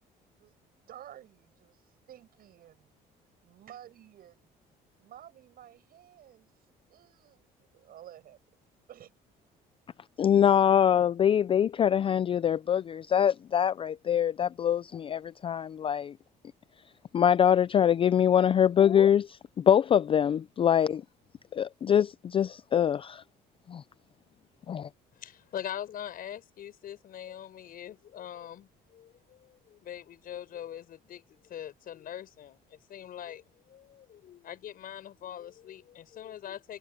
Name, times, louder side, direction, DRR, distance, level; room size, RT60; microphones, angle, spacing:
voice 1, 0.4-2.9 3.4-4.5 5.0-8.4 8.9-9.1, right 11 dB, 60° right, 7.6 m, -52 dB
voice 2, 10.2-16.2 17.1-21.0 21.5-23.2 23.7-23.8 24.7-24.9, left 9 dB, 30° left, 0.4 m, -24 dB
voice 3, 25.1-36.8, left 10 dB, 60° left, 5.8 m, -43 dB
cardioid pair, 110°, 17 cm